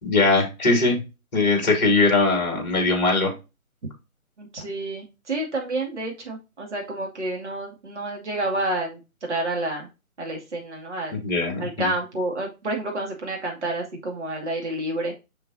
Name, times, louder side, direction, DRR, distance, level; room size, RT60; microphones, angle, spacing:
voice 1, 0.0-1.0 1.3-3.3 11.1-11.9, left 3 dB, 30° left, 1 dB, 2.6 m, -21 dB
voice 2, 4.4-9.9 10.2-11.2 11.6-15.2, right 2 dB, 55° right, 0 dB, 2.6 m, -29 dB
6.6 x 6.3 x 2.8 m, 0.27 s
figure-of-eight pair, 145°, 42 cm